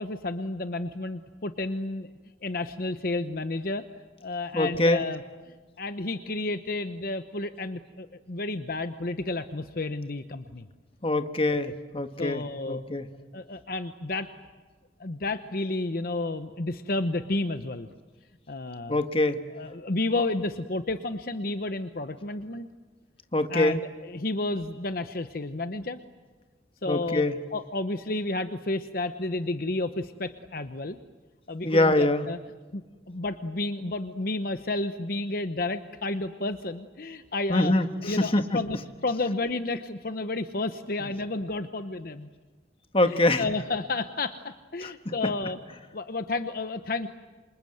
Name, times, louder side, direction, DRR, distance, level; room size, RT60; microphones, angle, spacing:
voice 1, 0.0-2.1 2.4-3.8 4.2-10.7 12.2-12.8 13.3-14.3 15.0-17.9 18.5-19.0 19.5-22.7 23.5-26.0 26.8-27.2 27.5-31.0 31.5-32.4 32.7-37.7 38.0-42.3 43.1-45.6 45.9-47.1, left 2 dB, 55° left, 9 dB, 0.9 m, -31 dB
voice 2, 4.5-5.0 11.0-13.0 18.9-19.4 23.3-23.8 26.9-27.4 31.6-32.3 37.5-37.9 38.2-38.4 42.9-43.4 44.8-45.1, left 2 dB, 30° left, 8 dB, 1.4 m, -24 dB
28.0 x 26.5 x 7.9 m, 1.3 s
head